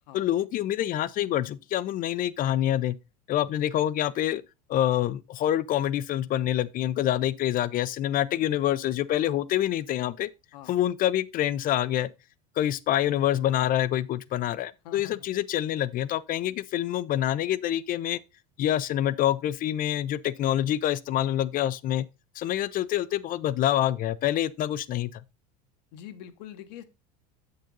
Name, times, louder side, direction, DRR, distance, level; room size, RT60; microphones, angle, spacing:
voice 1, 0.1-2.9 3.3-4.4 4.7-10.3 10.7-12.1 12.6-18.2 18.6-22.1 22.4-25.2, left 12 dB, 40° left, 0.6 m, -26 dB
voice 2, 14.8-15.3 25.9-26.8, left 10 dB, 80° left, 1.2 m, -45 dB
7.4 x 6.6 x 3.9 m
supercardioid pair, 105°, 21 cm